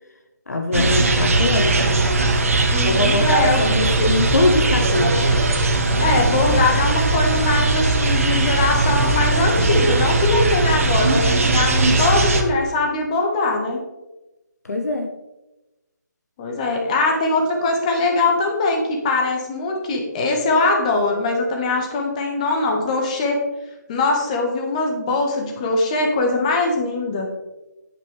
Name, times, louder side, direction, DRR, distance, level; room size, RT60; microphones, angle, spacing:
voice 1, 0.5-2.0 2.8-5.3 14.6-15.1, left 2 dB, 55° left, 5 dB, 1.0 m, -22 dB
sound 1, 0.7-12.4, right 2 dB, 45° right, 1.4 m, -19 dB
voice 2, 2.7-3.6 6.0-13.8 16.4-23.4 23.9-27.3, left 3 dB, 20° left, 1 dB, 1.8 m, -21 dB
10.5 x 9.4 x 3.5 m, 1.0 s
figure-of-eight pair, 150°, 10 cm